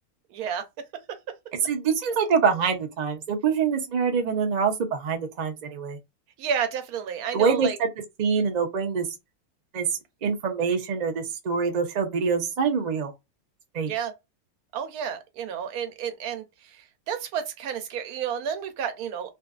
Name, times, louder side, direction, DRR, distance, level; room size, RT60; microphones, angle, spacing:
voice 1, 0.3-0.6 6.4-7.8 13.9-14.1 14.7-16.8 17.1-19.3, right 8 dB, 85° right, 1.1 m, -31 dB
voice 2, 1.6-6.0 7.3-7.9 8.2-9.1 9.7-9.9 10.2-13.1 13.7-13.9, right 6 dB, 60° right, 0.4 m, -25 dB
2.6 x 2.4 x 2.3 m
omnidirectional pair, 1.6 m